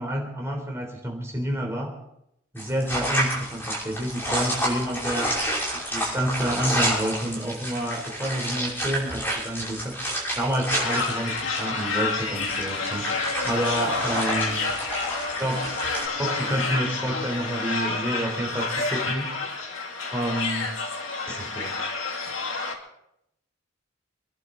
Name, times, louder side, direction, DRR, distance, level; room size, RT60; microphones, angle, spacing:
voice 1, 0.0-1.9 2.5-5.3 5.7-10.0 10.4-13.1 13.4-14.6 15.4-15.7 16.2-19.3 20.1-20.7 21.3-21.7, right 1 dB, 15° right, 0 dB, 3.5 m, -29 dB
sound 1, 2.6-16.0, right 1 dB, 10° left, 5.9 m, -30 dB
sound 2, 10.7-22.8, left 3 dB, 85° left, 2.5 m, -29 dB
27.0 x 11.5 x 3.9 m, 0.81 s
head